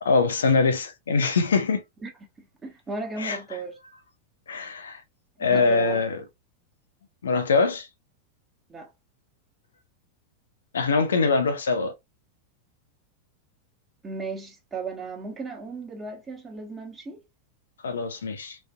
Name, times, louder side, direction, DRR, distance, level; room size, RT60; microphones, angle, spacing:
voice 1, 0.0-1.8 3.2-3.4 4.5-5.0 5.4-6.2 7.2-7.9 10.7-11.9 17.8-18.6, left 4 dB, 65° left, 0.5 m, -23 dB
voice 2, 2.4-3.7 5.5-6.0 8.7-8.9 14.0-17.2, right 4 dB, 15° right, 1.2 m, -35 dB
4.0 x 2.6 x 2.3 m
figure-of-eight pair, 90°, 0 cm